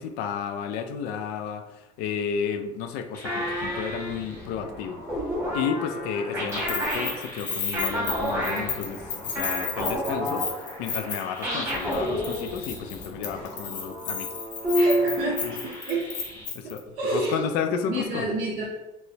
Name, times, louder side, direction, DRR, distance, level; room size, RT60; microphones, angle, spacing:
voice 1, 0.0-5.2 5.5-10.5 10.8-14.3 15.4-15.5 16.5-18.3, left 7 dB, 90° left, 7 dB, 0.4 m, -32 dB
sound 1, 3.1-16.4, equal, 15° left, 0.7 m, -43 dB
sound 2, 3.2-4.3 5.1-11.0 11.4-12.8 14.6-15.6, equal, 20° right, 1.0 m, -29 dB
Keys jangling, 6.5-11.4 11.7-12.0 12.2-16.8, left 6 dB, 60° left, 0.8 m, -33 dB
voice 2, 14.7-15.6 15.9-16.1 16.6-17.4 17.9-18.6, right 2 dB, 75° right, -6 dB, 0.8 m, -29 dB
4.5 x 2.0 x 2.7 m, 0.95 s
cardioid pair, 155°, 15 cm